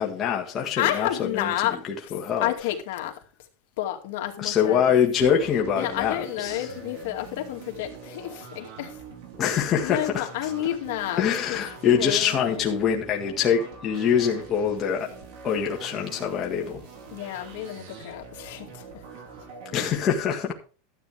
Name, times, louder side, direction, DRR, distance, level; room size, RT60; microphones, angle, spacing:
voice 1, 0.0-1.1 1.3-1.5 2.1-2.5 4.4-6.7 9.4-10.5 11.2-15.1 15.4-16.8 19.7-20.5, left 8 dB, 25° left, 1.8 m, -24 dB
voice 2, 0.8-1.8 2.4-3.1 3.8-4.9 5.7-9.0 9.4-12.7 17.1-19.0, left 13 dB, 65° left, 2.3 m, -30 dB
sound 1, 5.2-19.9, right 5 dB, 55° right, 4.2 m, -44 dB
13.0 x 8.8 x 3.5 m
supercardioid pair, 165°, 0 cm